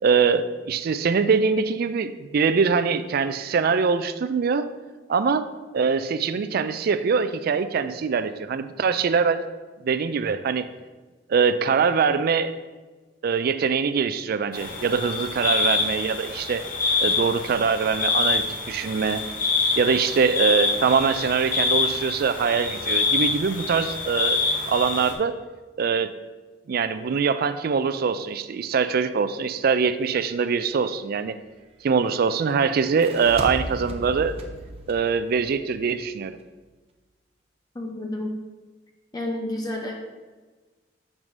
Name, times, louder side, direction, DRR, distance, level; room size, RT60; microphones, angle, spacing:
voice 1, 0.0-4.7 5.1-5.5 5.7-9.4 9.8-10.7 11.3-12.6 13.2-16.6 17.0-19.2 19.8-24.4 24.7-25.4 25.8-26.1 26.7-31.3 31.8-34.3 34.9-36.4, right 5 dB, 55° right, 12 dB, 0.4 m, -23 dB
sound 1, 14.5-25.1, left 4 dB, 50° left, 1.2 m, -26 dB
sound 2, 32.8-36.1, right 1 dB, 35° right, 0.7 m, -36 dB
voice 2, 37.7-38.4 39.1-39.9, left 1 dB, 20° left, 1 dB, 0.6 m, -30 dB
7.3 x 3.2 x 5.2 m, 1.3 s
head